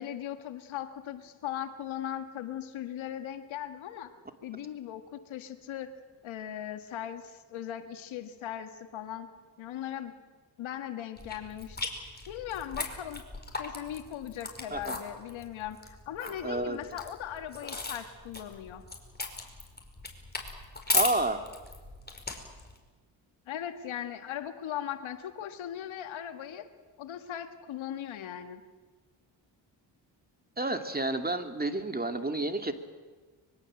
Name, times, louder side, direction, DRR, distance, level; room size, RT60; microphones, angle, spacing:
voice 1, 0.0-4.1 4.4-5.9 6.2-9.3 9.6-10.1 10.6-11.8 12.3-13.2 13.6-18.8 23.5-26.7 27.0-28.6, left 10 dB, 80° left, 8 dB, 1.9 m, -39 dB
sound 1, 11.2-22.8, left 3 dB, 20° left, 5.2 m, -37 dB
voice 2, 16.4-16.8 20.9-21.4 30.6-32.7, right 2 dB, 20° right, 7 dB, 2.7 m, -30 dB
24.5 x 22.5 x 7.8 m, 1.3 s
supercardioid pair, 55°, 47 cm